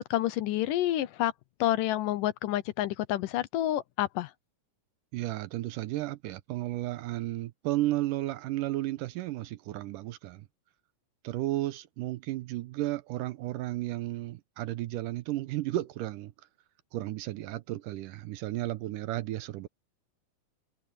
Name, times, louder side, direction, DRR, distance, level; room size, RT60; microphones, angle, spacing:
voice 1, 0.0-1.3 1.6-4.3, left 14 dB, 75° left, 2.3 m, -29 dB
voice 2, 5.1-10.4 11.2-16.3 16.9-19.7, right 16 dB, 80° right, 2.2 m, -33 dB
omnidirectional pair, 4.0 m